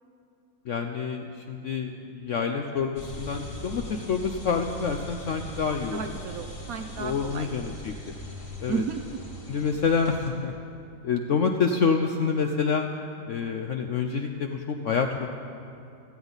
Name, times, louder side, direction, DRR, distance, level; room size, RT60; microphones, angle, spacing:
voice 1, 0.7-6.1 7.0-7.9 8.6-8.8 9.5-10.5 11.0-12.9 13.3-15.3, left 5 dB, 65° left, 4 dB, 0.7 m, -27 dB
sound 1, 3.0-10.3, equal, 50° left, 2.5 m, -40 dB
voice 2, 5.7-7.5 8.7-9.2, right 6 dB, 65° right, 7 dB, 0.9 m, -34 dB
17.0 x 14.5 x 4.0 m, 2.6 s
omnidirectional pair, 1.9 m